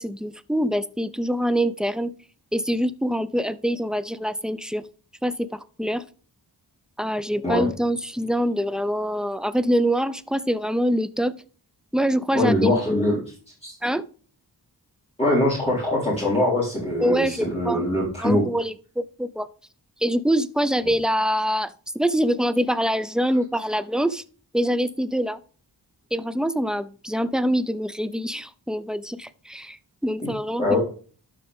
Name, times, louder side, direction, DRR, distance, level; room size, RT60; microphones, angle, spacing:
voice 1, 0.0-2.1 2.5-4.8 5.2-6.0 7.0-11.4 11.9-13.2 13.8-14.0 17.0-17.9 18.2-19.5 20.0-24.2 24.5-25.4 26.1-30.8, equal, ahead, 14 dB, 0.6 m, -25 dB
voice 2, 12.3-13.2 13.6-13.8 15.2-18.4 30.6-30.8, left 1 dB, 15° left, -7 dB, 4.1 m, -22 dB
12.5 x 5.2 x 3.6 m, 0.40 s
wide cardioid pair, 55°, 41 cm